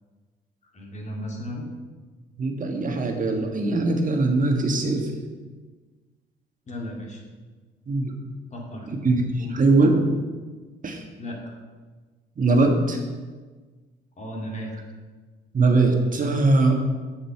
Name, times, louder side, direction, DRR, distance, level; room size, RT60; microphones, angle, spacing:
voice 1, 0.7-1.7 6.7-7.2 8.5-8.9 9.4-9.6 11.2-11.6 14.2-14.7, equal, 35° left, -1 dB, 2.4 m, -35 dB
voice 2, 2.4-5.1 7.9-8.1 9.0-10.0 10.8-11.0 12.4-13.0 15.5-16.8, right 3 dB, 40° right, 3 dB, 1.6 m, -21 dB
7.7 x 6.7 x 5.9 m, 1.4 s
cardioid pair, 90°, 20 cm